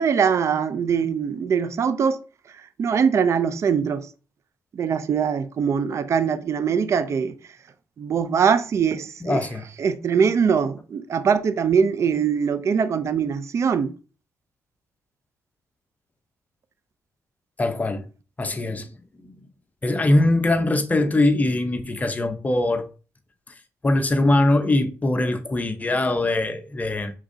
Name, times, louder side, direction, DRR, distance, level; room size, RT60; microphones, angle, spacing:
voice 1, 0.0-2.2 2.8-4.1 4.7-7.3 8.0-9.4 9.8-13.9, right 6 dB, 55° right, 0.5 m, -22 dB
voice 2, 9.2-9.6 17.6-18.0 18.4-18.9 19.1-19.4 19.8-22.8 23.8-27.1, left 2 dB, 25° left, 0.8 m, -22 dB
4.9 x 3.6 x 2.7 m
cardioid pair, 70°, 6 cm